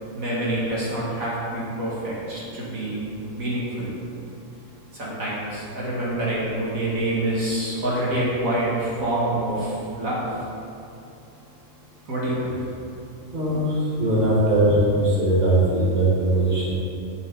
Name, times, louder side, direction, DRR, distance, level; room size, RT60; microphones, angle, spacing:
voice 1, 0.2-3.1 3.3-4.0 4.9-10.4 12.1-12.5, right 1 dB, 65° right, -7 dB, 2.2 m, -26 dB
voice 2, 13.3-16.7, right 1 dB, 30° right, -7 dB, 2.3 m, -20 dB
10.5 x 6.8 x 3.9 m, 2.7 s
omnidirectional pair, 1.5 m